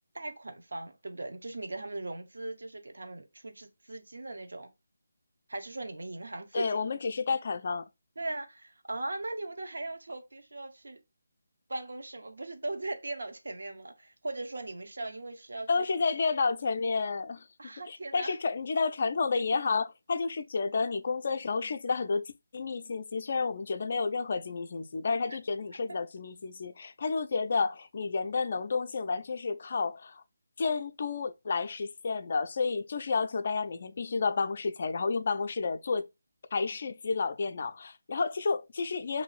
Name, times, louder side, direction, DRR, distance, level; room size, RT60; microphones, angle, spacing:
voice 1, 0.1-4.7 5.5-6.7 8.2-11.0 11.7-15.9 17.6-18.4, right 2 dB, 70° right, 0.6 m, -39 dB
voice 2, 6.5-7.9 15.7-17.5 17.9-30.2 30.6-36.1 36.5-39.2, left 4 dB, 50° left, 0.3 m, -31 dB
2.6 x 2.4 x 3.1 m
figure-of-eight pair, 155°, 0 cm